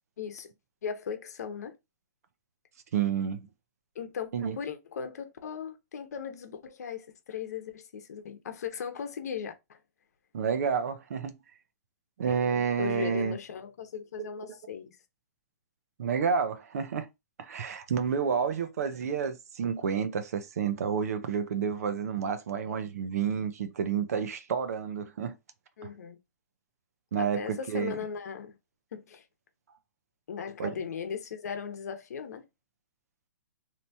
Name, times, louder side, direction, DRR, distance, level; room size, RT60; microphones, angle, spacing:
voice 1, 0.2-0.5 0.8-1.7 3.9-9.8 12.3-14.9 22.7-22.8 25.8-26.2 27.2-28.6 28.9-29.2 30.3-32.4, left 7 dB, 70° left, 0.8 m, -38 dB
voice 2, 2.9-3.5 4.3-4.6 10.3-11.4 12.2-13.4 14.2-14.6 16.0-17.1 17.4-25.3 25.8-25.9 27.1-28.0 30.6-30.7, right 7 dB, 65° right, 0.7 m, -30 dB
3.3 x 2.8 x 2.8 m
hypercardioid pair, 165°, 9 cm